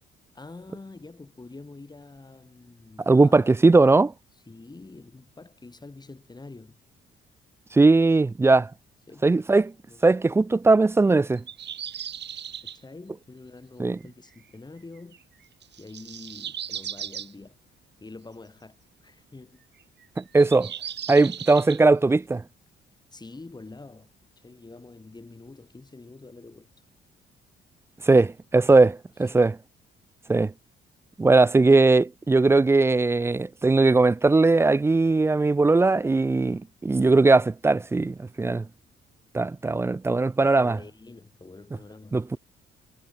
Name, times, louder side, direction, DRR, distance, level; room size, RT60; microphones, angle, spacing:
voice 1, 0.3-3.5 4.5-6.8 9.1-9.4 9.9-10.1 12.6-15.2 15.8-17.6 18.0-19.6 23.1-24.1 24.4-26.7 40.6-42.4, left 3 dB, 20° left, 7.3 m, -46 dB
voice 2, 3.1-4.1 7.7-8.7 9.2-9.7 10.0-11.4 13.8-14.0 20.2-20.7 21.1-22.4 28.0-29.6 30.3-30.5 31.2-38.7 39.3-40.8 42.1-42.4, right 3 dB, 15° right, 0.3 m, -19 dB
sound 1, 11.4-12.8 15.0-15.2 15.6-17.3 19.8-21.8, right 9 dB, 60° right, 6.7 m, -37 dB
cardioid pair, 90°, 20 cm